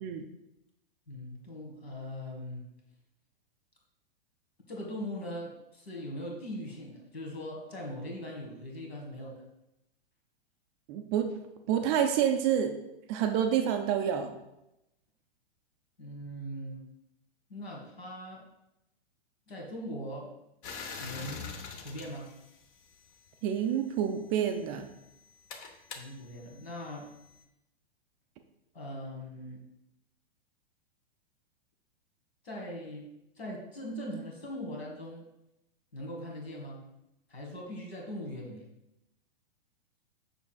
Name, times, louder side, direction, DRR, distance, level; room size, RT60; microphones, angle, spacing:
voice 1, 1.1-2.6 4.7-9.4 16.0-16.8 17.5-18.4 19.5-20.3 21.0-21.5 21.8-22.3 26.0-27.1 28.7-29.6 32.4-33.1 33.4-35.2 35.9-36.8 37.3-38.6, equal, 80° left, -1 dB, 1.8 m, -40 dB
voice 2, 10.9-11.3 11.7-12.7 13.1-14.3 23.4-24.9, right 9 dB, 25° right, 6 dB, 0.4 m, -28 dB
sound 1, 20.6-23.3 24.2-27.4, left 5 dB, 40° left, 0.8 m, -45 dB
7.0 x 5.9 x 2.3 m, 0.88 s
figure-of-eight pair, 105°, 30 cm